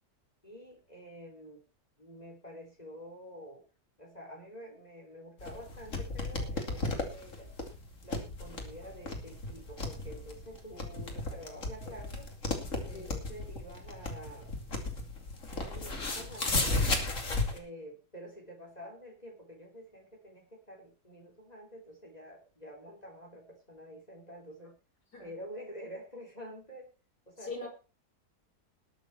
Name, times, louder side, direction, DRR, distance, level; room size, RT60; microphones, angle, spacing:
voice 1, 0.4-1.6 2.0-3.6 4.0-7.5 8.0-12.3 12.8-14.6 15.5-16.7 17.5-24.7 25.2-26.9 27.3-27.7, equal, 25° left, 3.8 m, -48 dB
Pages- Turning and Riffling, 5.4-17.6, left 2 dB, 50° left, 3.0 m, -35 dB
voice 2, 27.4-27.7, left 3 dB, 80° left, 5.5 m, -41 dB
20.5 x 7.2 x 4.4 m
omnidirectional pair, 1.7 m